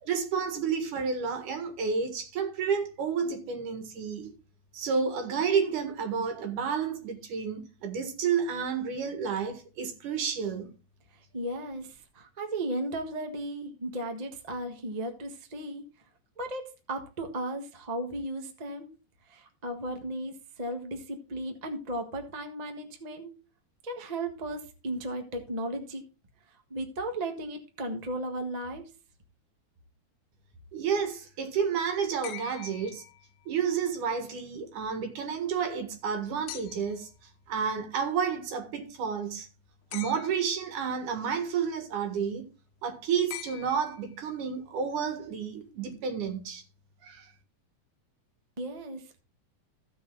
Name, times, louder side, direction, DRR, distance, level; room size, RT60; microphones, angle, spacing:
voice 1, 0.0-4.3 4.7-10.7 30.7-33.0 33.5-37.1 37.5-39.5 39.9-42.5 42.8-46.6 47.0-47.3, right 6 dB, 80° right, 3.2 m, -30 dB
voice 2, 11.1-15.8 16.4-18.9 19.3-23.3 23.8-26.0 26.7-28.8 48.6-49.2, right 1 dB, 35° right, 0.6 m, -35 dB
sound 1, 32.2-33.6 36.5-37.1 39.9-40.7 43.3-44.3 45.9-46.0, left 13 dB, 75° left, 1.8 m, -44 dB
15.5 x 5.5 x 3.8 m
omnidirectional pair, 3.5 m